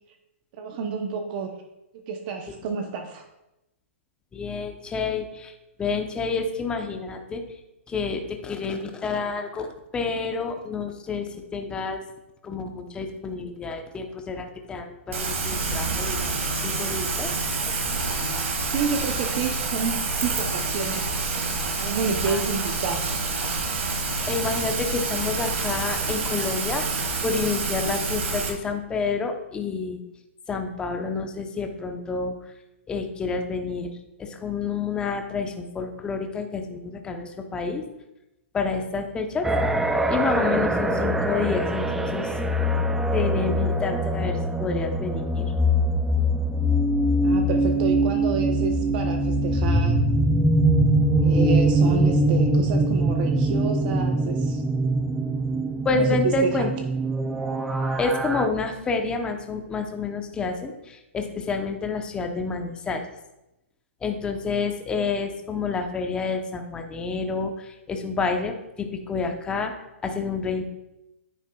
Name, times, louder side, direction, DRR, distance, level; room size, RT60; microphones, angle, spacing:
voice 1, 0.6-1.5 2.1-3.2 18.7-21.1 21.8-23.0 47.2-50.0 51.2-54.6 55.9-56.7, right 5 dB, 40° right, 4 dB, 0.8 m, -29 dB
voice 2, 4.3-5.5 5.8-7.4 7.9-9.7 9.9-12.0 12.4-17.3 22.3-22.4 24.3-26.8 27.2-30.0 30.5-32.3 32.9-33.9 34.2-37.8 38.5-39.5 40.1-42.3 43.1-45.5 55.8-56.7 58.0-63.0 64.0-69.7 70.0-70.6, left 4 dB, 10° left, 4 dB, 0.8 m, -29 dB
Rain, 15.1-28.5, right 3 dB, 75° right, 2.1 m, -27 dB
sound 1, 39.4-58.5, right 1 dB, 5° right, 0.4 m, -23 dB
9.8 x 8.2 x 2.3 m, 0.91 s
hypercardioid pair, 140°, 7 cm